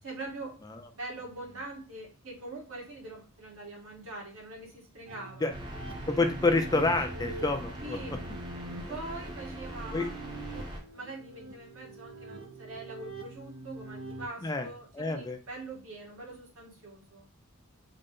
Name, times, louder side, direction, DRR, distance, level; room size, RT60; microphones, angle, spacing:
voice 1, 0.0-0.6 0.9-5.5 6.9-7.0 7.8-8.2 8.9-10.5 10.9-17.3, right 2 dB, 85° right, -3 dB, 1.6 m, -43 dB
sound 1, 5.1-14.3, right 3 dB, 55° right, 0.6 m, -45 dB
sound 2, 5.5-10.8, equal, 20° right, 0.9 m, -41 dB
voice 2, 6.1-8.0 9.9-10.1 14.4-14.7 14.9-15.4, left 3 dB, 20° left, 6 dB, 0.4 m, -27 dB
3.8 x 2.1 x 3.6 m, 0.35 s
head